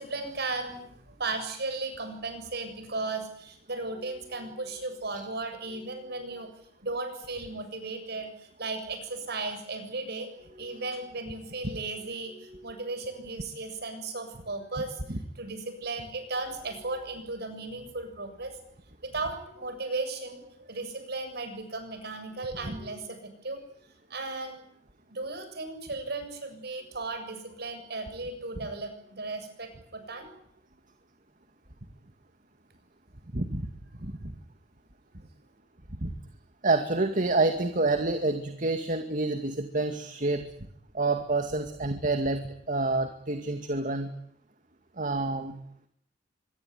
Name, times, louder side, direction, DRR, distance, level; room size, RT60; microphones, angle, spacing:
voice 1, 0.0-6.5 6.8-18.5 19.0-23.6 24.1-24.6 25.1-30.4, right 3 dB, 60° right, 8 dB, 7.4 m, -36 dB
voice 2, 33.3-33.7 34.0-34.1 36.0-36.1 36.6-40.4 40.9-42.4 42.7-44.1 45.0-45.6, right 2 dB, 45° right, 7 dB, 2.3 m, -28 dB
25.5 x 22.5 x 9.7 m, 0.68 s
head